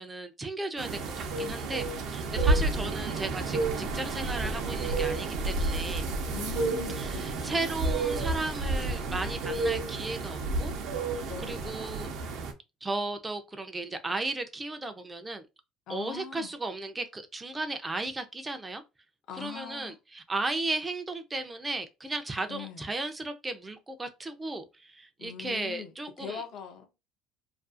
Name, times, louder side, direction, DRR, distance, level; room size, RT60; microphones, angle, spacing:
voice 1, 0.0-6.1 7.0-10.7 11.1-12.1 12.8-15.5 15.9-18.8 19.4-26.4, right 2 dB, 15° right, 0.4 m, -35 dB
sound 1, 0.8-12.5, right 3 dB, 60° right, 0.5 m, -30 dB
voice 2, 2.3-3.1 6.3-7.7 11.3-11.8 15.9-16.5 19.3-20.0 22.5-22.9 25.2-26.9, left 7 dB, 55° left, 0.5 m, -42 dB
2.5 x 2.3 x 2.4 m
cardioid pair, 135°, 0 cm